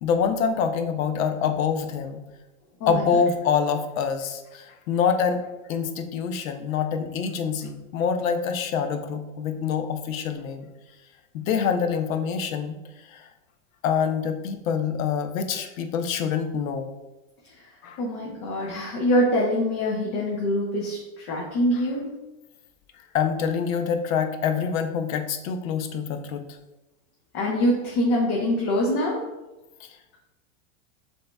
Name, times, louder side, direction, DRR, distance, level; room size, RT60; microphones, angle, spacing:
voice 1, 0.0-2.2 2.9-10.7 11.3-12.8 13.1-13.3 13.8-16.9 17.8-18.0 21.7-21.8 23.1-26.5 29.8-30.0, left 6 dB, 70° left, 7 dB, 0.7 m, -26 dB
voice 2, 18.0-22.1 27.3-29.2, equal, 45° left, -3 dB, 0.9 m, -24 dB
7.5 x 2.8 x 2.2 m, 1.0 s
supercardioid pair, 135°, 41 cm